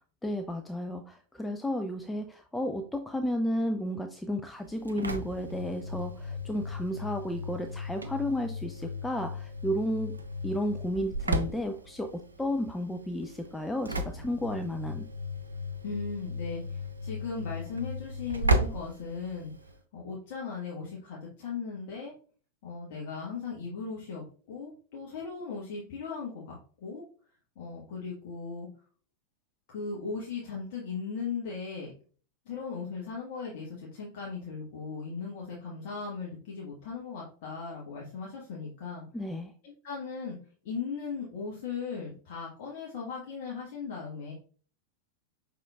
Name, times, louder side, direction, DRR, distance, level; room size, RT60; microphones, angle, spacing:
voice 1, 0.2-10.1 10.4-15.1 39.1-39.5, left 1 dB, 5° left, 6 dB, 0.4 m, -32 dB
Engine / Slam, 4.6-19.8, equal, 80° right, 0.5 m, -35 dB
voice 2, 15.8-19.5 19.9-22.1 22.6-27.0 27.6-28.7 29.7-31.9 32.4-39.0 39.6-40.4 40.6-44.3, left 5 dB, 50° left, -4 dB, 1.2 m, -38 dB
5.7 x 3.5 x 2.3 m, 0.42 s
figure-of-eight pair, 90°, 0 cm